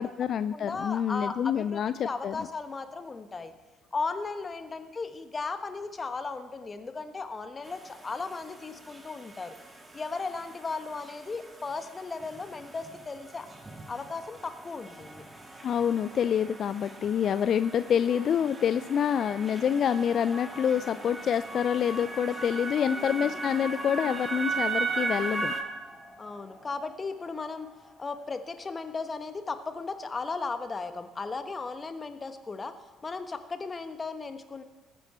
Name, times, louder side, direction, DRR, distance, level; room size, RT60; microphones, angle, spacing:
voice 1, 0.0-2.5 15.6-25.5, left 8 dB, 50° left, 13 dB, 0.4 m, -27 dB
voice 2, 0.5-3.5 3.9-9.6 9.9-13.5 13.9-15.3 17.3-17.4 22.8-23.2 26.2-27.7 28.0-32.7 33.0-34.6, left 4 dB, 30° left, 9 dB, 1.2 m, -36 dB
sound 1, 7.6-25.6, right 3 dB, 25° right, 2.1 m, -38 dB
sound 2, 12.6-30.3, left 1 dB, 10° left, 4.2 m, -55 dB
20.0 x 8.4 x 4.4 m, 1.3 s
figure-of-eight pair, 50°, 0 cm